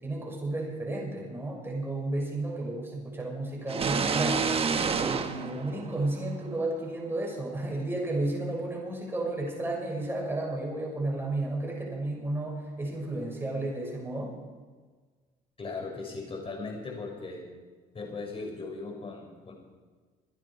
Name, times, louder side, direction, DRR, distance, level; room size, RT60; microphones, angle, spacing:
voice 1, 0.0-4.5 5.1-14.3, right 2 dB, 15° right, -1 dB, 6.3 m, -32 dB
sound 1, 3.7-6.5, right 5 dB, 35° right, 1.3 m, -29 dB
voice 2, 15.6-17.4 17.9-19.5, left 3 dB, 35° left, 1 dB, 5.8 m, -38 dB
25.5 x 10.5 x 4.9 m, 1.4 s
cardioid pair, 110°, 17 cm